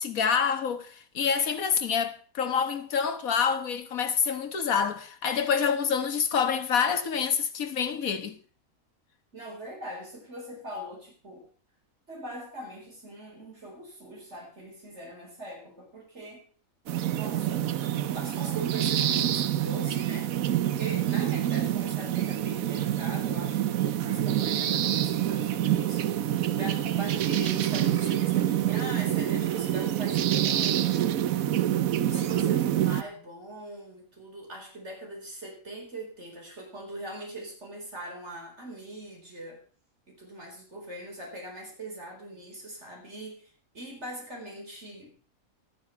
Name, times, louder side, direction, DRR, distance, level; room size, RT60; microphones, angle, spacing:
voice 1, 0.0-8.4, left 6 dB, 75° left, 1.7 m, -27 dB
voice 2, 9.3-11.5 12.1-16.4 17.1-17.6 18.0-30.9 31.9-39.6 40.1-45.1, right 1 dB, 50° right, 4.9 m, -41 dB
sound 1, 16.9-33.0, right 11 dB, 75° right, 1.2 m, -27 dB
13.0 x 9.6 x 5.7 m
omnidirectional pair, 1.5 m